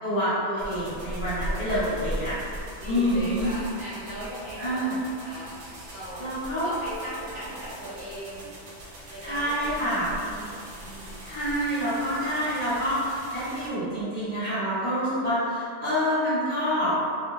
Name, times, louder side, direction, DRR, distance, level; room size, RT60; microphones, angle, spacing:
voice 1, 0.0-2.3 2.8-3.5 4.5-5.0 6.2-6.7 9.2-10.1 11.2-16.9, equal, 30° left, -12 dB, 0.9 m, -27 dB
sound 1, 0.6-13.7, equal, 80° right, 0.9 m, -39 dB
voice 2, 1.4-2.3 2.8-6.3 6.6-8.5 9.1-11.3, right 1 dB, 60° right, -12 dB, 1.4 m, -39 dB
2.4 x 2.1 x 3.1 m, 2.3 s
omnidirectional pair, 1.2 m